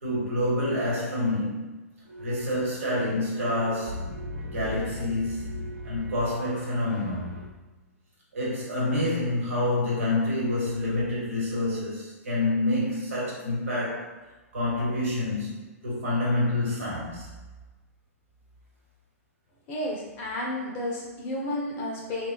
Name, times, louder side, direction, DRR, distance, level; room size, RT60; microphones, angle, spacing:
voice 1, 0.0-1.8 2.2-4.1 4.5-7.6 8.3-14.1 14.5-17.3, left 1 dB, 65° right, -6 dB, 1.1 m, -28 dB
sound 1, 2.0-7.4, left 1 dB, 45° right, 0.7 m, -39 dB
voice 2, 19.7-22.3, left 1 dB, 25° left, -3 dB, 0.6 m, -32 dB
2.9 x 2.1 x 2.3 m, 1.2 s
figure-of-eight pair, 110°, 8 cm